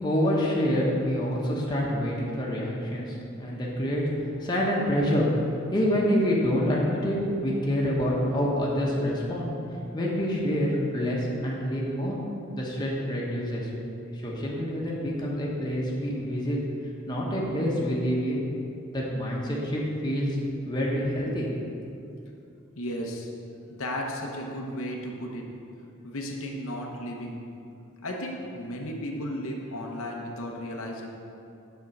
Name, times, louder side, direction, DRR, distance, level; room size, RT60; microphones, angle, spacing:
voice 1, 0.0-4.0 4.4-5.3 5.7-9.5 9.9-12.2 12.5-13.7 14.1-16.6 17.1-18.4 18.9-20.4 20.6-21.5, equal, 20° left, -4 dB, 1.1 m, -27 dB
voice 2, 22.8-23.3 23.7-25.6 26.0-27.4 28.0-31.1, equal, 75° left, 0 dB, 0.9 m, -34 dB
7.1 x 4.4 x 6.5 m, 2.7 s
head